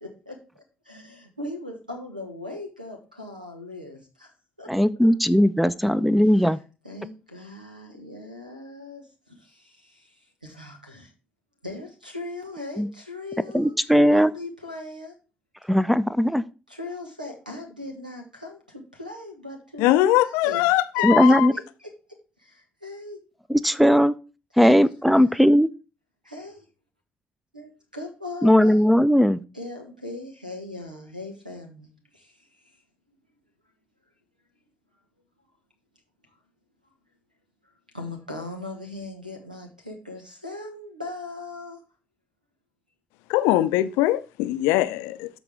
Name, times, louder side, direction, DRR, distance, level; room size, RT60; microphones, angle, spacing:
voice 1, 0.0-4.3 4.6-4.7 6.3-6.6 6.8-11.1 11.6-15.2 16.7-20.6 20.9-21.9 22.4-23.2 24.6-24.8 25.1-25.3 26.2-26.6 27.5-28.8 29.5-32.7 36.8-36.9 37.9-41.8, left 2 dB, 90° right, 1.2 m, -39 dB
voice 2, 4.7-6.6 12.8-12.9 13.5-14.3 15.7-16.4 21.0-21.5 23.5-24.1 24.6-25.7 28.4-29.4, equal, ahead, 0.6 m, -18 dB
voice 3, 19.8-21.5 43.3-45.3, left 15 dB, 65° left, 0.5 m, -21 dB
13.0 x 4.3 x 3.5 m
figure-of-eight pair, 40°, 4 cm